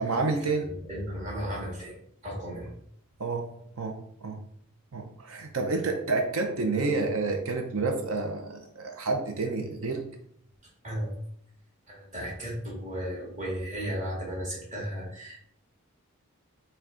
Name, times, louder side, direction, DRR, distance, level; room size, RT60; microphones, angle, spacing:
voice 1, 0.0-0.7 3.2-3.5 3.8-4.4 4.9-10.0, right 3 dB, 65° right, 4 dB, 0.6 m, -29 dB
voice 2, 0.6-2.0 2.2-2.7 10.8-11.1 11.9-15.4, equal, 30° right, -3 dB, 1.7 m, -35 dB
6.0 x 2.3 x 3.7 m, 0.68 s
head